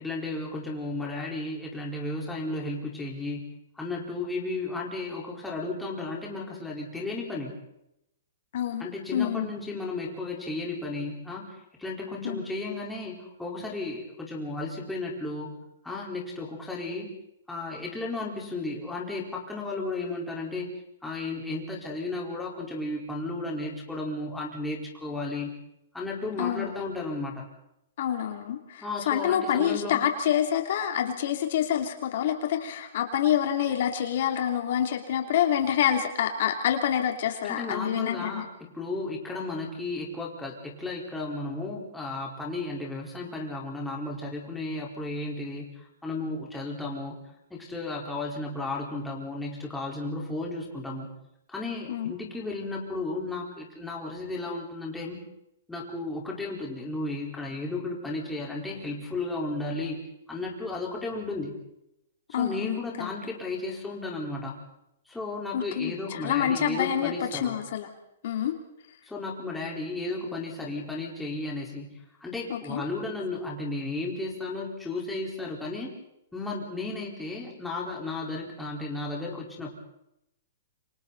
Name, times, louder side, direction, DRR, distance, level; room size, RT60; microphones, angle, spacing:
voice 1, 0.0-7.5 8.8-15.6 15.8-17.1 17.5-20.7 21.0-25.5 25.9-27.4 28.8-30.0 37.4-47.2 47.5-51.1 51.5-55.2 55.7-60.0 60.3-61.5 62.3-64.6 65.1-67.6 69.1-75.9 76.3-79.7, left 2 dB, 5° left, -3 dB, 4.4 m, -34 dB
voice 2, 8.5-8.9 9.1-9.5 12.2-12.4 26.4-26.7 28.0-38.4 51.9-52.1 62.3-63.1 65.5-67.9 68.2-68.6 72.5-72.8, left 10 dB, 55° left, 4 dB, 3.1 m, -27 dB
28.0 x 26.5 x 4.2 m, 0.82 s
hypercardioid pair, 160°, 0 cm